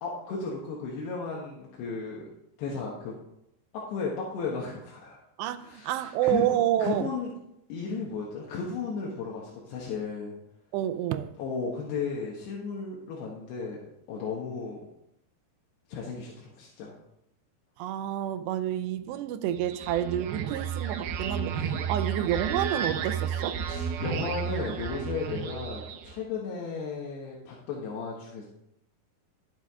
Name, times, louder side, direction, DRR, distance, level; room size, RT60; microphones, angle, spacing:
voice 1, 0.0-2.3 2.6-3.2 3.7-5.2 5.6-7.3 7.7-10.3 11.4-13.8 14.1-14.8 15.9-17.0 23.7-28.5, left 4 dB, 80° left, 3.5 m, -34 dB
voice 2, 5.4-7.1 10.7-11.3 17.8-23.6, right 12 dB, 90° right, 2.8 m, -29 dB
sound 1, 19.6-26.2, right 7 dB, 70° right, 2.6 m, -32 dB
12.5 x 8.5 x 3.7 m
omnidirectional pair, 4.8 m